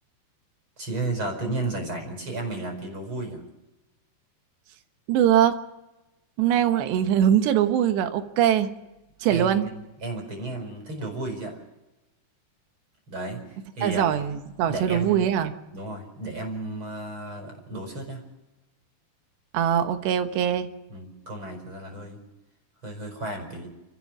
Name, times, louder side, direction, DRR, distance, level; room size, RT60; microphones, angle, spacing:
voice 1, 0.8-3.4 9.3-9.7 10.0-11.6 13.1-13.4 13.8-14.1 14.7-15.2 15.7-18.2 20.9-22.2 22.8-23.7, right 2 dB, 30° right, 3 dB, 5.3 m, -33 dB
voice 2, 5.1-5.6 6.4-8.7 9.2-9.7 13.8-15.5 19.5-20.7, right 10 dB, 80° right, 8 dB, 3.4 m, -22 dB
29.5 x 15.0 x 6.2 m, 1.0 s
omnidirectional pair, 5.1 m